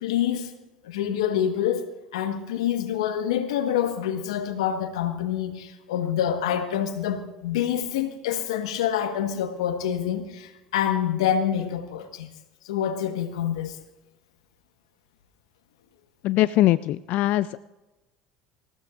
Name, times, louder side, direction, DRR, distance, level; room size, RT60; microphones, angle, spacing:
voice 1, 0.0-0.5 0.8-12.3 12.6-13.8, left 9 dB, 80° left, 1.3 m, -26 dB
voice 2, 16.2-17.6, left 15 dB, 60° left, 0.4 m, -21 dB
26.5 x 15.5 x 2.5 m
hypercardioid pair, 70°, 3 cm